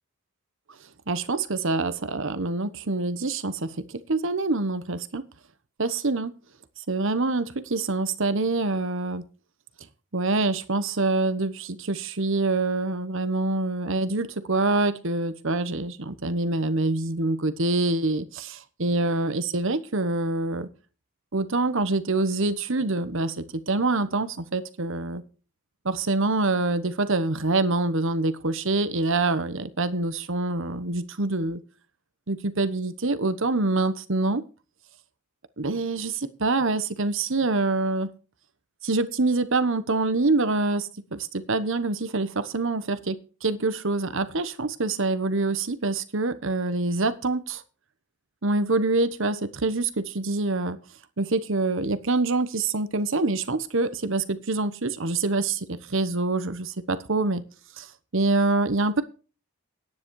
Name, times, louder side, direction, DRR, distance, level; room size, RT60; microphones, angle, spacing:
voice 1, 1.1-5.2 5.8-6.3 6.9-9.3 10.1-20.7 21.3-25.2 25.8-31.6 32.3-34.4 35.6-38.1 38.8-47.6 48.4-50.8 51.2-57.4 57.8-57.9 58.1-59.0, right 3 dB, 60° right, 13 dB, 1.1 m, -25 dB
10.5 x 9.7 x 4.8 m, 0.35 s
head